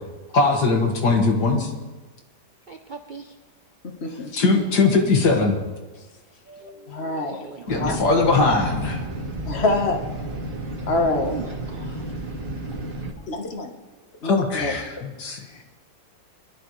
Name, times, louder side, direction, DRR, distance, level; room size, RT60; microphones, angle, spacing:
voice 1, 0.3-1.7 4.3-5.6 7.7-9.0 14.2-15.6, left 3 dB, 70° left, 2 dB, 2.3 m, -20 dB
voice 2, 2.7-3.3 6.5-7.7 7.9-8.1 11.2-12.0, right 5 dB, 65° right, 6 dB, 0.4 m, -40 dB
voice 3, 4.0-4.3 6.9-7.4 7.8-8.0 9.5-10.0 10.9-11.3 13.3-13.7 14.2-14.8, left 2 dB, 40° left, 4 dB, 1.4 m, -25 dB
sound 1, 7.7-13.1, right 2 dB, 35° right, 1.5 m, -32 dB
23.0 x 12.0 x 3.2 m, 1.3 s
omnidirectional pair, 1.8 m